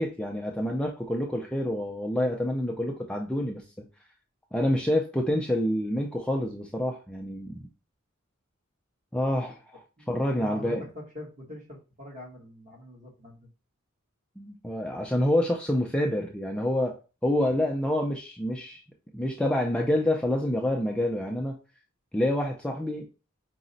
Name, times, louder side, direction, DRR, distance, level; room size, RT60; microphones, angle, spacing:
voice 1, 0.0-3.9 4.5-7.7 9.1-9.8 10.1-10.8 14.4-17.0 17.2-18.8 19.1-21.6 22.1-23.1, left 1 dB, 5° left, 0 dB, 0.3 m, -27 dB
voice 2, 10.0-13.5, left 1 dB, 35° right, -1 dB, 1.2 m, -44 dB
4.9 x 2.0 x 3.9 m, 0.32 s
head